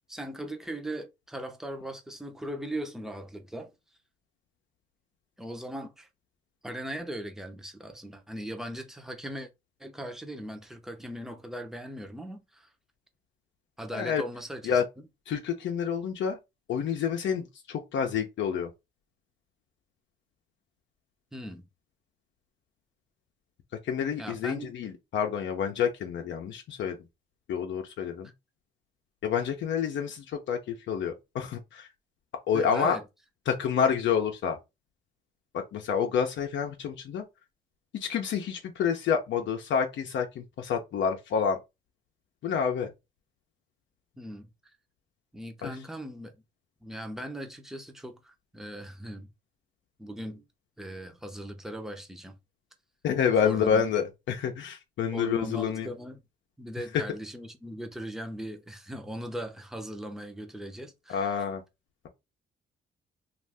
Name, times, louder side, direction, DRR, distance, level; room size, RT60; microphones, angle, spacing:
voice 1, 0.1-3.7 5.4-6.1 6.6-9.5 9.8-12.7 13.8-14.8 21.3-21.7 24.2-24.7 32.5-33.0 44.2-44.5 45.3-46.3 46.8-49.3 50.0-50.4 50.8-52.4 53.4-53.8 55.1-56.2 56.6-61.4, right 1 dB, ahead, 0.7 m, -39 dB
voice 2, 15.3-16.4 16.7-18.7 23.8-27.0 27.5-28.3 29.2-31.9 32.5-33.0 33.5-34.6 35.5-37.2 37.9-41.6 42.4-42.9 45.6-45.7 53.0-55.9 61.1-61.6, left 7 dB, 70° left, 0.6 m, -28 dB
2.6 x 2.5 x 3.4 m
cardioid pair, 90°, 20 cm